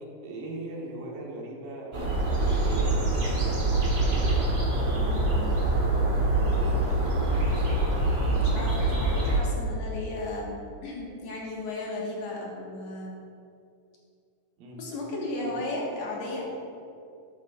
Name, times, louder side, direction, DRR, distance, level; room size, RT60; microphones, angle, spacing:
voice 1, 0.2-3.0 3.4-3.9 14.6-14.8 15.4-15.5, right 2 dB, 85° right, -2 dB, 3.0 m, -39 dB
sound 1, 1.9-9.4, right 2 dB, 60° right, 0.8 m, -25 dB
voice 2, 5.0-5.5 8.3-13.2 14.8-16.5, left 2 dB, 60° left, -4 dB, 2.5 m, -35 dB
12.5 x 8.2 x 2.4 m, 2.5 s
omnidirectional pair, 3.9 m